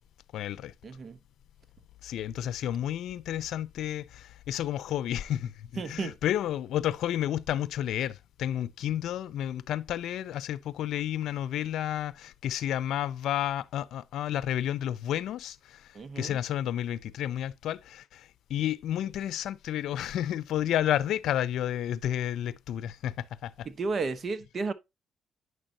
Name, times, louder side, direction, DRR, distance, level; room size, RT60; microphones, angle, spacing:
voice 1, 0.3-0.7 2.0-15.9 16.2-23.7, left 11 dB, 80° left, 0.6 m, -31 dB
voice 2, 0.8-1.2 5.8-6.2 15.9-16.4 23.6-24.7, right 4 dB, 45° right, 1.1 m, -33 dB
9.6 x 6.4 x 2.8 m
cardioid pair, 90°, 0 cm